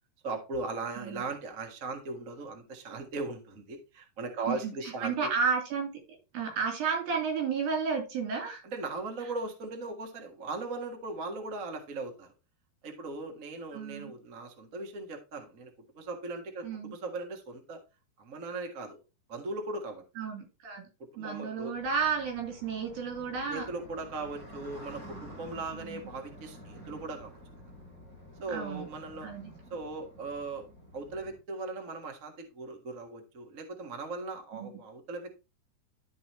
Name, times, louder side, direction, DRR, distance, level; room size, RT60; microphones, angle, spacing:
voice 1, 0.2-5.3 8.6-12.3 12.8-15.7 15.9-17.8 18.2-19.0 19.3-20.0 21.1-21.7 23.5-27.4 28.4-29.3 29.7-30.7 30.9-35.3, right 3 dB, 85° right, 3 dB, 0.7 m, -38 dB
voice 2, 4.5-5.9 6.3-8.6 13.7-14.1 16.6-16.9 20.2-20.8 21.2-23.7 25.8-26.0 28.5-28.8 29.2-29.4 34.5-34.7, right 6 dB, 65° right, 1 dB, 5.0 m, -32 dB
sound 1, 21.7-31.4, equal, 20° right, 3.4 m, -50 dB
12.5 x 5.5 x 3.1 m, 0.29 s
omnidirectional pair, 4.6 m